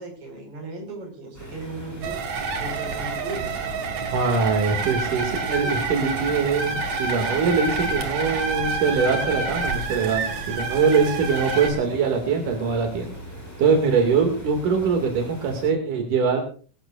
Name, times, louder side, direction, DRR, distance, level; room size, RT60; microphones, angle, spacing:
voice 1, 0.0-2.2 2.6-3.6, right 2 dB, 45° right, 2 dB, 6.1 m, -36 dB
sound 1, 1.3-15.7, equal, 5° left, 6.7 m, -40 dB
sound 2, 2.0-11.7, right 4 dB, 65° right, 3.3 m, -28 dB
voice 2, 4.1-13.1 13.6-16.4, right 5 dB, 85° right, 3 dB, 3.9 m, -22 dB
22.0 x 15.0 x 2.5 m, 0.39 s
omnidirectional pair, 3.5 m